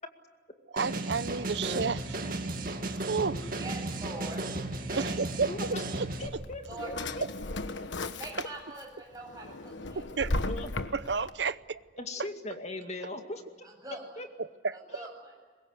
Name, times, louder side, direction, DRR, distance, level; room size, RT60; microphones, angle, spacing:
voice 1, 0.7-2.2 3.0-3.5 5.0-6.1 10.0-10.3 10.9-11.8 14.4-14.8, right 5 dB, 70° right, 16 dB, 0.7 m, -31 dB
sound 1, 0.8-6.3, right 2 dB, 50° right, 2.3 m, -34 dB
voice 2, 3.5-4.4 4.7-5.2 6.7-7.0 8.1-10.5 13.0-13.1 13.6-14.2 14.7-15.3, right 2 dB, 20° right, 0 dB, 7.9 m, -44 dB
voice 3, 5.5-5.8 6.2-7.6 10.5-10.7 12.0-13.4 14.2-14.3 15.0-15.1, left 2 dB, 40° left, 5 dB, 2.2 m, -39 dB
Drawer open or close, 6.3-8.8 9.2-11.3, left 2 dB, 90° left, 1.3 m, -35 dB
24.0 x 21.0 x 8.1 m, 1.5 s
head